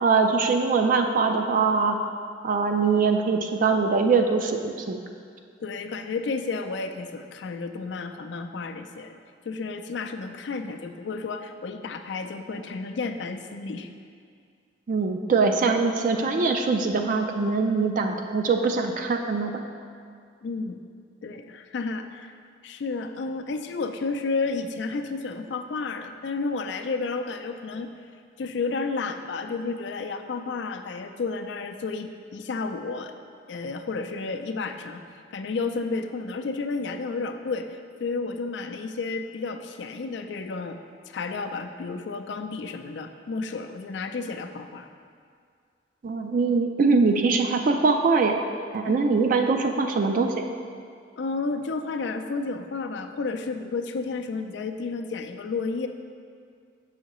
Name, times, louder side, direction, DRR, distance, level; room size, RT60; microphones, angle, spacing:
voice 1, 0.0-2.0 2.4-5.0 14.9-19.6 46.0-48.4 48.7-50.3, right 4 dB, 45° right, 4 dB, 0.3 m, -22 dB
voice 2, 5.6-9.2 9.5-13.9 20.4-20.8 21.2-22.4 22.6-27.9 28.4-33.1 33.5-35.0 35.3-40.8 41.1-44.9 48.9-49.1 51.2-55.9, left 4 dB, 70° left, 7 dB, 0.4 m, -31 dB
7.2 x 5.6 x 3.0 m, 2.2 s
head